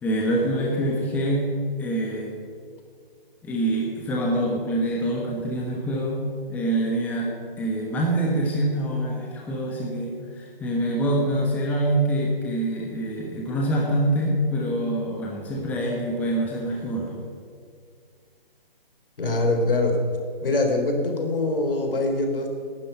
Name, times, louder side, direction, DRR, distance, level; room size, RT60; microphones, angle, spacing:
voice 1, 0.0-1.5 1.8-2.3 3.4-7.3 7.6-17.1, right 1 dB, 5° left, -2 dB, 1.2 m, -25 dB
voice 2, 19.2-20.0 20.4-22.6, left 2 dB, 65° left, 3 dB, 3.5 m, -23 dB
18.5 x 12.0 x 5.6 m, 2.2 s
hypercardioid pair, 160°, 29 cm